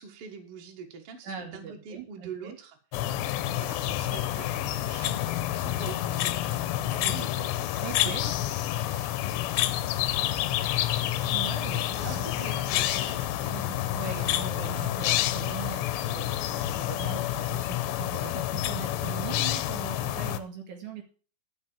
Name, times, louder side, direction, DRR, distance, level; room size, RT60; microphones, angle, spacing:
voice 1, 0.0-2.8 3.3-7.6 8.0-8.3 8.8-9.2 9.5-11.3 11.7-13.7 16.5-16.8, right 6 dB, 65° right, 3 dB, 1.4 m, -45 dB
voice 2, 1.2-2.1 2.4-2.6 6.8-7.3 7.8-8.2 11.3-12.6 13.5-21.0, right 7 dB, 50° right, 4 dB, 3.3 m, -40 dB
sound 1, 2.9-20.4, left 13 dB, 85° left, 2.8 m, -29 dB
12.0 x 6.1 x 7.0 m, 0.41 s
omnidirectional pair, 5.0 m